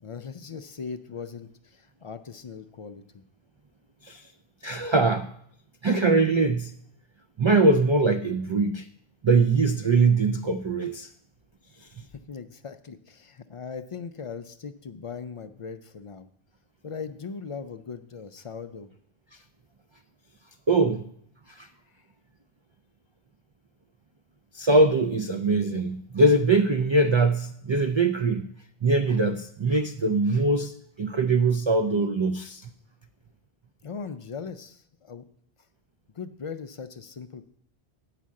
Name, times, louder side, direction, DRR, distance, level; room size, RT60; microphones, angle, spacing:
voice 1, 0.0-3.2 12.1-16.3 16.8-18.9 33.8-35.2 36.1-37.4, left 5 dB, 50° left, 10 dB, 0.4 m, -39 dB
voice 2, 4.6-5.3 5.8-6.7 7.4-8.9 9.2-11.1 11.8-12.1 20.7-21.1 21.5-21.7 24.5-28.5 28.8-32.7, right 3 dB, 50° right, 7 dB, 0.3 m, -22 dB
8.2 x 5.0 x 7.5 m, 0.67 s
omnidirectional pair, 1.0 m